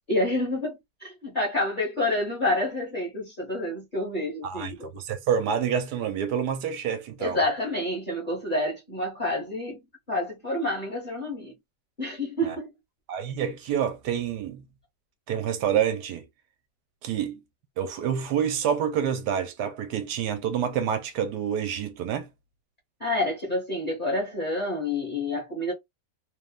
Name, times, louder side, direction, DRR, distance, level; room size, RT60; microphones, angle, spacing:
voice 1, 0.0-4.9 7.2-9.8 10.1-11.5 12.0-12.7 23.0-25.7, left 1 dB, 35° left, 1.1 m, -28 dB
voice 2, 4.4-7.4 12.4-12.6 13.1-14.7 15.3-16.2 17.0-17.4 17.8-22.3, right 8 dB, 75° right, 1.2 m, -28 dB
3.2 x 2.3 x 2.3 m
omnidirectional pair, 1.8 m